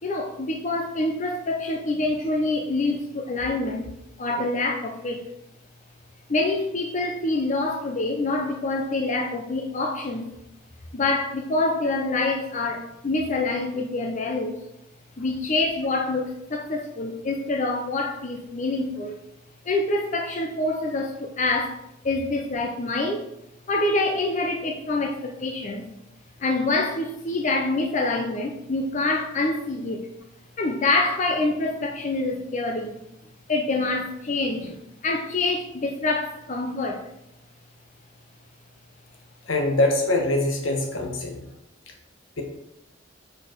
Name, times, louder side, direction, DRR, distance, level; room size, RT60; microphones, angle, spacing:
voice 1, 0.0-3.9 4.2-5.2 6.3-10.3 10.9-14.6 15.2-19.2 19.6-21.8 22.0-23.2 23.7-25.9 26.4-30.0 30.6-33.0 33.5-34.8 35.0-37.0, left 2 dB, 40° left, 2 dB, 0.6 m, -26 dB
voice 2, 39.5-41.4 42.4-42.5, left 2 dB, 85° left, 2 dB, 1.2 m, -23 dB
5.0 x 4.7 x 4.5 m, 0.84 s
head